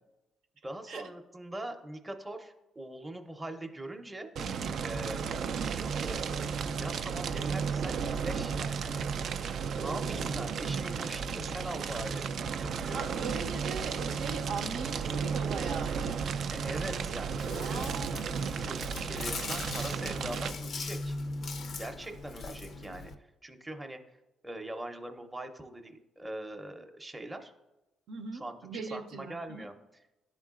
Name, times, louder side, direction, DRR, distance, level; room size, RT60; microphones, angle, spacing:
voice 1, 0.6-4.3 4.8-5.2 5.7-6.2 6.8-9.1 9.7-12.3 12.6-13.1 16.5-17.9 18.6-21.2 21.8-23.1 23.4-24.0 24.4-27.5 28.3-29.7, right 1 dB, 15° right, 4 dB, 0.6 m, -42 dB
Fire, 4.4-20.5, right 6 dB, 65° right, 0.3 m, -33 dB
voice 2, 12.9-16.3 17.6-18.5 28.1-29.7, right 4 dB, 85° right, 4 dB, 0.7 m, -40 dB
Chewing mastication, 16.8-23.1, left 3 dB, 55° left, 0.4 m, -40 dB
11.0 x 3.7 x 2.4 m, 0.98 s
cardioid pair, 90°, 0 cm